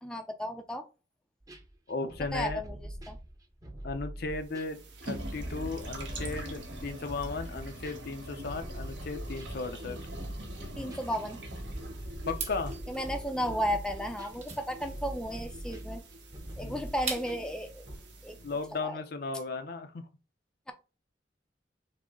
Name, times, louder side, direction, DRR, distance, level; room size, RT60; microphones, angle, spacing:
voice 1, 0.0-0.8 2.3-3.2 10.8-11.4 12.9-16.0 16.6-17.8 18.2-18.4 18.8-19.0, equal, 5° left, 0.5 m, -34 dB
sound 1, 1.4-4.8 5.1-18.0, right 1 dB, 20° right, 0.8 m, -43 dB
voice 2, 1.9-2.6 3.8-10.0 12.3-12.8 16.6-16.9 18.4-20.0, left 3 dB, 55° left, 0.5 m, -36 dB
sound 2, 4.4-18.7, right 1 dB, 70° right, 1.3 m, -44 dB
sound 3, 12.3-17.6, right 5 dB, 35° right, 1.4 m, -42 dB
6.0 x 2.1 x 3.7 m
head